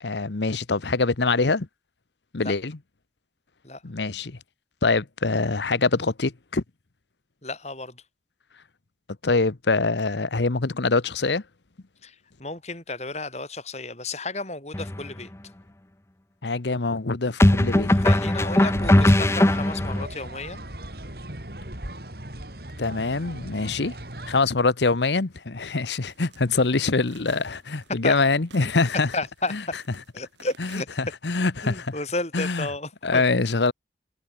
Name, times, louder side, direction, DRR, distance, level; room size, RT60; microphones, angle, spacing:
voice 1, 0.0-1.7 2.3-2.7 3.8-4.4 4.8-6.6 9.2-11.4 16.4-17.9 22.8-23.9 24.3-29.1 29.5-29.6 30.6-31.9 32.3-32.7 33.0-33.7, left 3 dB, 75° left, 1.0 m, -24 dB
voice 2, 7.4-8.0 12.0-15.3 17.9-20.6 28.0-28.2 29.1-29.5 30.1-30.9 31.6-33.2, left 2 dB, 35° left, 5.6 m, -33 dB
sound 1, 14.7-15.0 17.4-20.1, left 1 dB, 15° left, 0.6 m, -19 dB
sound 2, 18.7-24.4, right 1 dB, 55° right, 4.5 m, -38 dB
sound 3, 24.0-30.8, right 5 dB, 85° right, 6.9 m, -54 dB
head